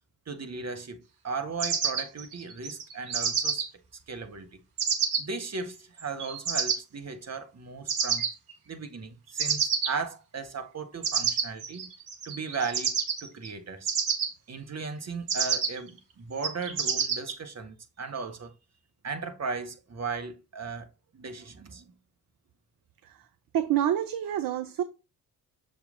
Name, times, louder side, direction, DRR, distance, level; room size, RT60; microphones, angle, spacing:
voice 1, 0.3-3.6 4.1-4.6 5.2-8.2 8.7-11.9 12.2-13.9 14.5-18.5 19.0-20.9 21.1-21.9, right 4 dB, 35° right, 1.6 m, -36 dB
sound 1, 1.6-3.7 4.8-5.2 6.0-6.8 7.9-8.5 9.4-9.9 11.0-13.5 13.9-14.3 15.3-15.9 16.4-17.3, right 6 dB, 85° right, 1.1 m, -28 dB
voice 2, 23.5-24.8, right 11 dB, 50° right, 0.7 m, -27 dB
6.7 x 4.0 x 3.8 m
hypercardioid pair, 40°, 43 cm